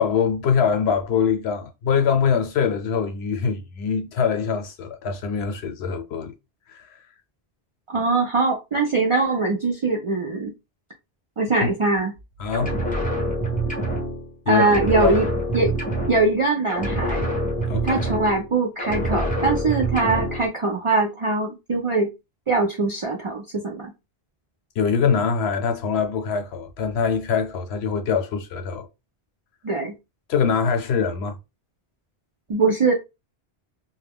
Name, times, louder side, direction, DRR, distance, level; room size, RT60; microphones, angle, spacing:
voice 1, 0.0-6.3 6.7-6.9 11.6-11.7 12.4-12.7 14.5-14.6 15.0-15.2 17.7-18.0 24.8-28.9 30.3-31.3, left 6 dB, 85° left, 0.9 m, -23 dB
voice 2, 7.9-10.5 11.4-12.1 14.5-15.3 15.5-15.8 16.1-17.3 17.8-22.1 22.5-23.9 29.6-29.9 32.5-32.9, right 3 dB, 60° right, 0.3 m, -22 dB
sound 1, 12.5-14.4 14.6-16.4 16.7-18.5 18.8-20.5, right 1 dB, 10° left, 0.8 m, -26 dB
2.2 x 2.1 x 3.4 m
omnidirectional pair, 1.0 m